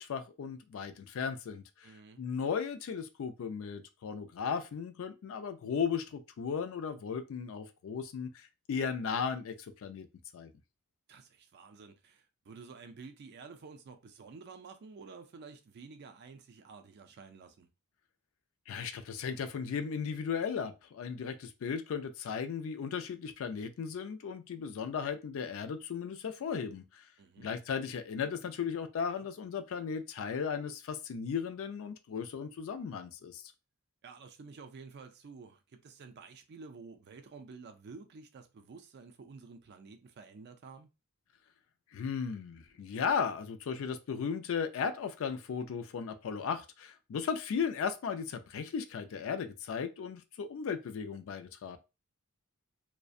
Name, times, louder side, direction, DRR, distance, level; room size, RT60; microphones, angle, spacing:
voice 1, 0.0-1.9 2.2-10.1 10.3-10.5 18.7-27.0 27.4-33.5 41.9-51.8, left 6 dB, 65° left, 0.3 m, -36 dB
voice 2, 1.8-2.3 11.1-17.7 27.2-27.6 34.0-40.9, right 4 dB, 50° right, 0.4 m, -51 dB
2.5 x 2.1 x 2.3 m
head